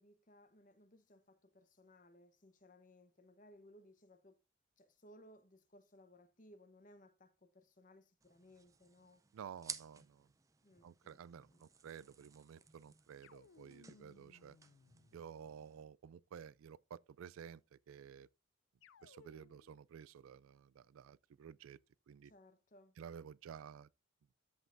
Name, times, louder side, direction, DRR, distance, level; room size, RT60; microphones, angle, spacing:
voice 1, 0.0-4.4 4.8-9.2 10.6-11.2 11.5-11.7 22.2-22.9, left 1 dB, 40° left, 1.0 m, -63 dB
sound 1, 8.2-15.8, right 6 dB, 15° right, 0.4 m, -55 dB
voice 2, 9.3-10.3 10.8-14.6 15.1-18.3 19.0-21.8 22.1-22.3 23.0-23.9, right 7 dB, 85° right, 0.3 m, -53 dB
sound 2, 13.2-15.7 18.8-19.8, left 6 dB, 65° left, 0.4 m, -65 dB
13.5 x 5.3 x 2.6 m
head